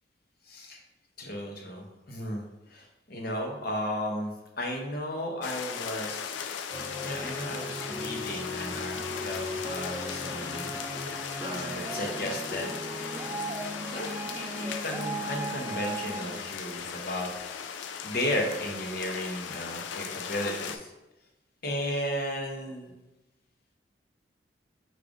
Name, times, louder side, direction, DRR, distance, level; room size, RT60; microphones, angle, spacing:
voice 1, 0.5-0.8 1.2-10.7 11.4-12.7 13.8-17.3 18.0-20.9 21.6-22.9, left 1 dB, 55° left, 1 dB, 0.8 m, -34 dB
sound 1, 5.4-20.8, left 7 dB, 80° left, 0.3 m, -38 dB
sound 2, 6.7-16.4, equal, 15° right, 0.4 m, -37 dB
4.8 x 2.4 x 3.5 m, 0.99 s
head